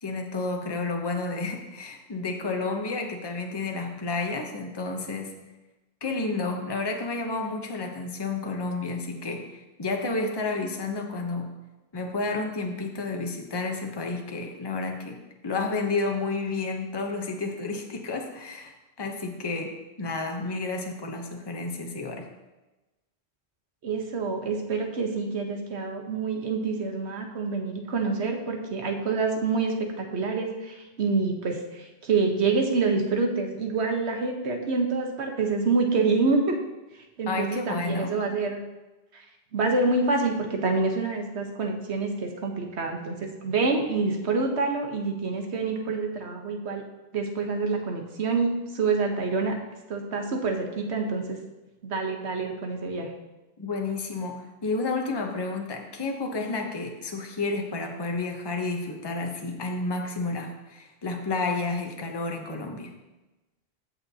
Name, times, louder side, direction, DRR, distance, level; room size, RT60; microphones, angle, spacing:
voice 1, 0.0-5.4 6.0-11.5 11.9-22.3 37.3-38.1 53.6-62.9, left 3 dB, 25° left, 2 dB, 0.9 m, -31 dB
voice 2, 23.8-36.6 37.2-38.6 39.1-39.2 39.5-46.8 47.1-49.6 49.9-51.4 51.8-53.1, right 4 dB, 90° right, 3 dB, 1.4 m, -27 dB
15.5 x 5.7 x 2.8 m, 1.1 s
omnidirectional pair, 1.1 m